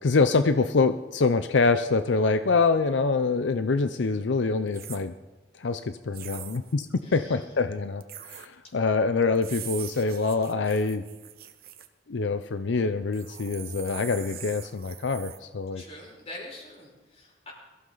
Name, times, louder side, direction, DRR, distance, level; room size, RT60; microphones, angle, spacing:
voice 1, 0.0-5.1 5.6-11.0 12.1-15.8, left 4 dB, 85° left, 10 dB, 0.6 m, -25 dB
sound 1, 4.7-5.0 6.1-6.7 8.0-8.5 9.3-11.9 13.1-15.4, right 11 dB, 55° right, 1.0 m, -42 dB
voice 2, 7.0-7.6 8.6-8.7 15.7-17.5, left 1 dB, 35° left, -2 dB, 5.3 m, -44 dB
22.5 x 14.5 x 3.9 m, 1.2 s
head